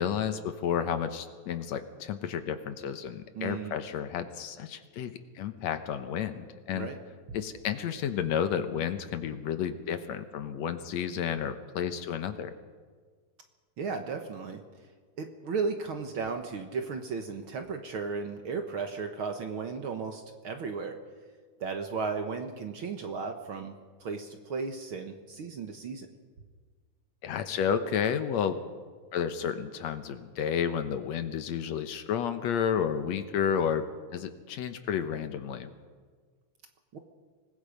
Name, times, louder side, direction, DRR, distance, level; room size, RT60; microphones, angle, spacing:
voice 1, 0.0-6.9 7.3-12.5 27.2-28.6 29.1-33.9 34.1-35.7, left 8 dB, 70° left, 9 dB, 2.1 m, -31 dB
voice 2, 3.4-3.7 6.7-7.0 13.8-14.6 15.2-21.0 21.6-26.1 36.9-37.0, right 5 dB, 55° right, 5 dB, 1.7 m, -35 dB
25.5 x 20.0 x 5.2 m, 1.5 s
omnidirectional pair, 3.4 m